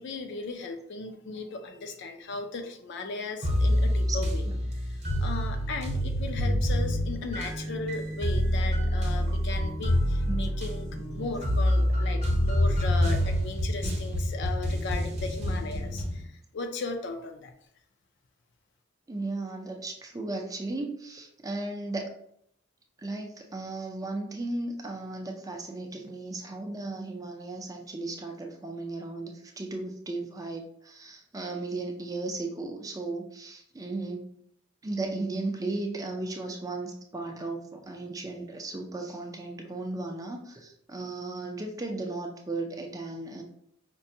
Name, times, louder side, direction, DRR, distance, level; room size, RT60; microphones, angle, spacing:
voice 1, 0.0-4.4 4.7-17.5, left 3 dB, 60° left, 5 dB, 0.5 m, -37 dB
sound 1, 3.4-16.2, equal, 35° right, 0.8 m, -27 dB
voice 2, 19.1-22.1 23.0-34.2 34.8-43.4, right 2 dB, 20° right, 2 dB, 0.4 m, -35 dB
5.2 x 2.2 x 2.7 m, 0.70 s
head